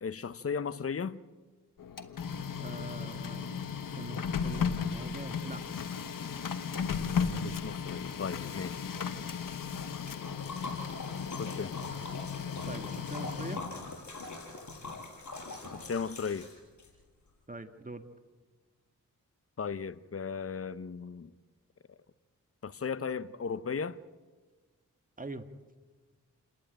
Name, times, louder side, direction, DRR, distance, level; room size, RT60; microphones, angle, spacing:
voice 1, 0.0-1.2 7.4-8.8 11.4-11.8 15.7-16.5 19.6-21.3 22.6-24.0, left 6 dB, 45° left, 0.8 m, -36 dB
Printer, 1.8-13.9, left 6 dB, 90° left, 1.3 m, -35 dB
voice 2, 2.6-3.6 3.9-5.6 12.7-13.6 17.5-18.0 25.2-25.5, right 2 dB, 25° right, 1.8 m, -43 dB
Liquid, 9.7-16.9, left 3 dB, 65° left, 5.6 m, -43 dB
29.0 x 11.5 x 9.1 m
cardioid pair, 45°, 32 cm